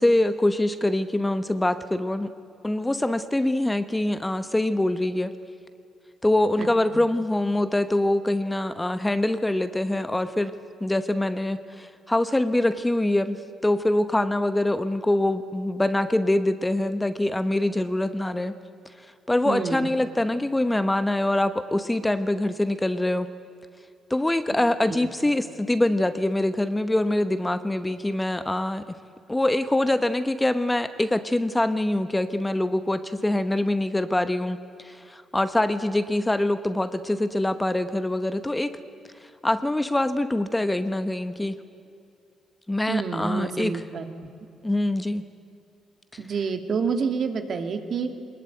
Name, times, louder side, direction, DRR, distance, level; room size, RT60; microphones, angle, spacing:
voice 1, 0.0-2.3 2.6-5.3 6.2-10.5 10.8-18.6 19.3-23.3 24.1-28.8 29.3-38.7 39.2-41.6 42.7-43.8 44.6-45.2 46.1-46.2, left 1 dB, 10° left, 11 dB, 1.0 m, -24 dB
voice 2, 19.5-19.9 24.9-25.1 42.9-44.3 46.2-48.1, right 5 dB, 55° right, 7 dB, 2.2 m, -28 dB
21.5 x 20.0 x 9.3 m, 2.5 s
cardioid pair, 90°, 0 cm